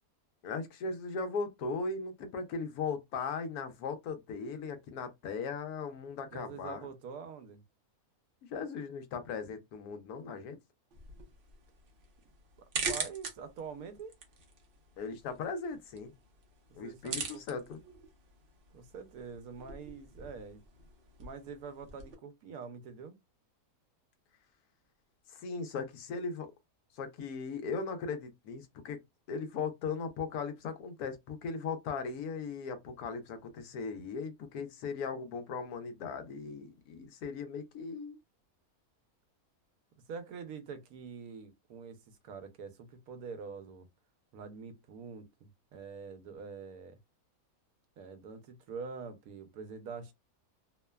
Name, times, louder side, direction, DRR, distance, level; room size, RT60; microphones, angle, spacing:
voice 1, 0.4-6.9 8.5-10.6 15.0-16.1 16.8-17.8 25.3-26.5 27.0-29.0 29.3-38.2, left 5 dB, 85° left, 1.1 m, -38 dB
voice 2, 6.3-7.6 12.9-14.2 16.7-17.6 18.7-20.6 21.2-23.2 40.1-43.9 44.3-47.0 48.0-50.1, right 5 dB, 80° right, 1.1 m, -45 dB
sound 1, 10.9-22.1, right 4 dB, 55° right, 0.6 m, -43 dB
3.0 x 2.1 x 2.2 m
omnidirectional pair, 1.6 m